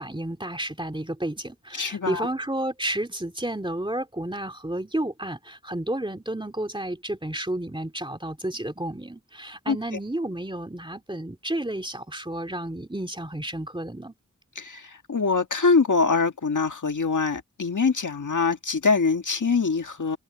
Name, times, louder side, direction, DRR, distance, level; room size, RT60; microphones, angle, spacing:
voice 1, 0.0-14.1, right 1 dB, 15° right, 2.9 m, -31 dB
voice 2, 1.7-2.3 9.7-9.8 14.6-20.2, left 4 dB, 70° left, 1.9 m, -24 dB
wide cardioid pair, 80°, 31 cm